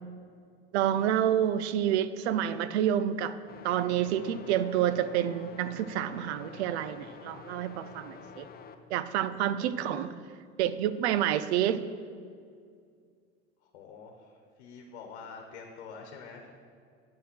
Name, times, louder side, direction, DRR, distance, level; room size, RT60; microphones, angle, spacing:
voice 1, 0.7-3.4 3.6-8.5 8.9-10.1 10.6-11.8, right 10 dB, 80° right, 14 dB, 0.6 m, -28 dB
sound 1, 3.5-8.7, left 6 dB, 30° left, 0.7 m, -48 dB
voice 2, 9.7-10.1 13.6-16.5, left 5 dB, 80° left, 3 dB, 1.1 m, -46 dB
9.3 x 5.7 x 6.1 m, 2.2 s
supercardioid pair, 95°, 32 cm